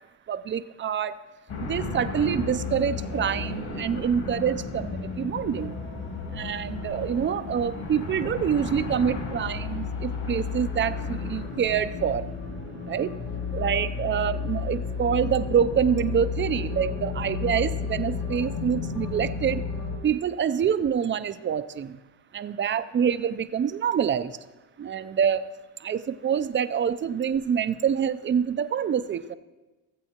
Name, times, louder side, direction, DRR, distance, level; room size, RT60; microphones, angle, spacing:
voice 1, 0.3-1.2 1.6-5.7 6.3-12.3 12.9-13.1 13.5-19.6 20.0-22.0 22.3-24.3 24.8-25.5 25.8-29.4, right 8 dB, 25° right, 13 dB, 0.4 m, -26 dB
sound 1, 1.5-20.0, left 4 dB, 50° left, 2.1 m, -32 dB
17.5 x 7.7 x 2.9 m, 1.1 s
cardioid pair, 90°, 47 cm